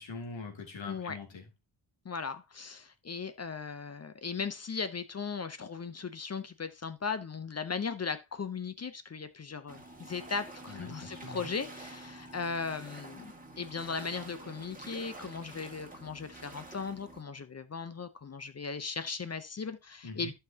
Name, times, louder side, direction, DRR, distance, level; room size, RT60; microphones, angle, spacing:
voice 1, 0.0-1.5 10.7-11.5 20.0-20.3, left 3 dB, 65° left, 2.8 m, -43 dB
voice 2, 0.8-1.2 2.0-20.3, left 5 dB, 30° left, 0.8 m, -37 dB
sound 1, 9.7-17.2, right 2 dB, 15° right, 1.9 m, -48 dB
11.5 x 5.7 x 2.9 m
cardioid pair, 95°, 49 cm